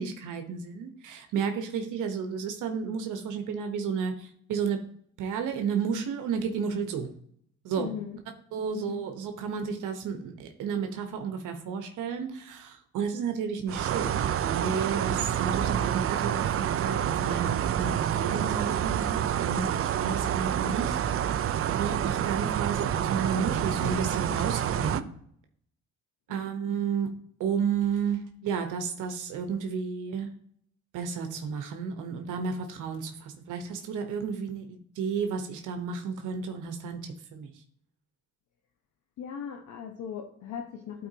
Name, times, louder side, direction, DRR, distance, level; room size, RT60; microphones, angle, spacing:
voice 1, 0.0-4.8 5.2-7.1 7.6-7.9 8.5-16.5 16.8-21.4 21.7-25.0 26.3-27.1 27.4-30.3 30.9-37.5, right 6 dB, 85° right, 5 dB, 1.0 m, -32 dB
voice 2, 7.8-8.2 8.7-9.0 39.2-41.1, left 8 dB, 75° left, 2 dB, 1.0 m, -38 dB
sound 1, 13.7-25.0, right 10 dB, 50° right, 0.5 m, -28 dB
11.5 x 4.6 x 2.8 m, 0.67 s
cardioid pair, 90°, 30 cm